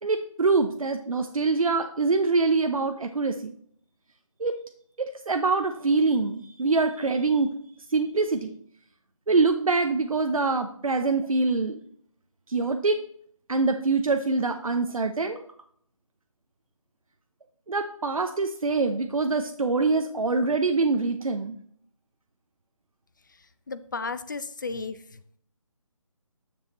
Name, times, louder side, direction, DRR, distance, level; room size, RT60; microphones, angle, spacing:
voice 1, 0.0-3.5 4.4-4.6 5.0-7.5 7.9-8.5 9.3-11.8 12.5-13.0 13.5-15.4 17.7-21.6, right 3 dB, 75° right, 5 dB, 0.7 m, -24 dB
voice 2, 23.7-25.0, left 4 dB, 35° left, 13 dB, 0.5 m, -33 dB
10.0 x 7.2 x 3.0 m, 0.63 s
figure-of-eight pair, 155°, 18 cm